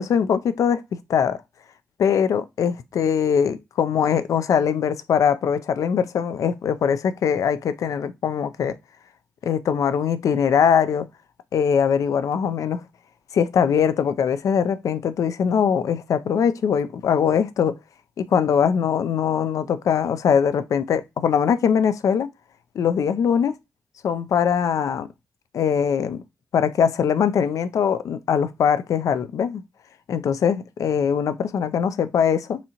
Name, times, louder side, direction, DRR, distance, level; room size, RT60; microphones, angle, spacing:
voice 1, 0.0-1.4 2.0-8.7 9.4-11.1 11.5-12.8 13.3-17.7 18.2-22.3 22.8-23.6 24.0-25.1 25.5-26.2 26.5-29.6 30.1-32.6, left 7 dB, 80° left, 0.3 m, -21 dB
4.1 x 2.6 x 2.8 m
cardioid pair, 45°, 6 cm